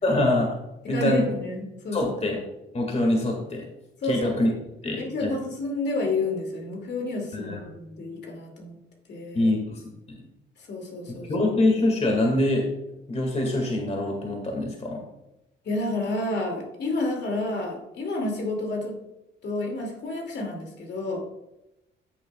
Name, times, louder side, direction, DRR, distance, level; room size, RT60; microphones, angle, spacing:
voice 1, 0.0-0.6 0.9-1.3 1.9-2.4 2.7-3.7 4.0-4.5 4.8-5.4 7.3-7.6 9.3-9.8 10.1-10.2 11.3-12.7 13.1-15.0, left 1 dB, 30° left, 1 dB, 2.0 m, -24 dB
voice 2, 0.8-2.2 4.0-4.6 5.0-8.8 9.1-9.5 10.7-11.3 15.6-19.0 19.4-21.2, left 2 dB, 60° left, 1 dB, 2.5 m, -30 dB
14.5 x 7.0 x 2.3 m, 0.90 s
cardioid pair, 90°, 20 cm